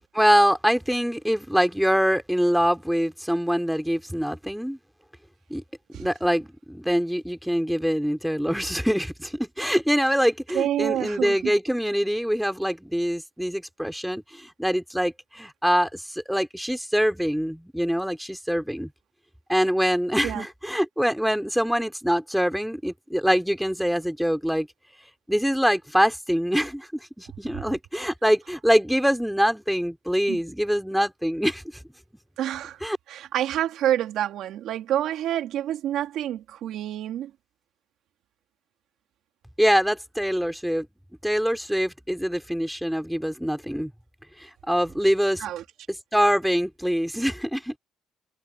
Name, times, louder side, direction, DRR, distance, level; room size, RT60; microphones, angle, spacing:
voice 1, 0.1-4.8 5.5-5.6 6.0-18.9 19.5-24.7 25.3-31.6 32.8-33.0 39.6-40.9 41.2-43.9 44.4-45.4 46.1-47.8, equal, ahead, 3.4 m, -24 dB
voice 2, 10.5-11.5 20.2-20.4 30.3-30.4 32.4-32.8 33.1-37.3 45.4-45.6, right 12 dB, 70° right, 3.1 m, -27 dB
cardioid pair, 135°, 0 cm